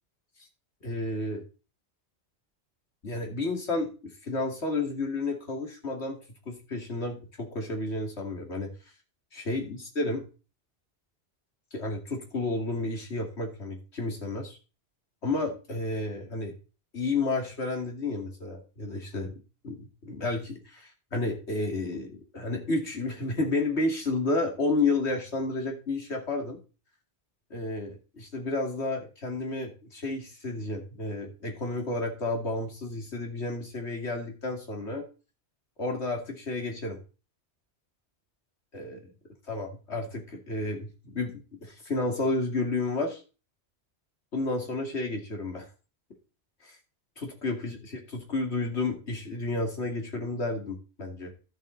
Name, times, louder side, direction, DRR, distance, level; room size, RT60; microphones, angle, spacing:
voice 1, 0.8-1.4 3.0-3.9 4.2-6.2 6.5-8.7 9.3-10.3 11.7-14.6 15.2-16.5 16.9-19.3 19.6-26.6 27.5-35.0 35.8-37.0 38.7-39.1 39.5-43.2 44.3-45.7 46.6-46.8 47.2-51.3, left 2 dB, 75° left, 2 dB, 2.9 m, -31 dB
12.5 x 7.5 x 4.0 m, 0.33 s
omnidirectional pair, 1.1 m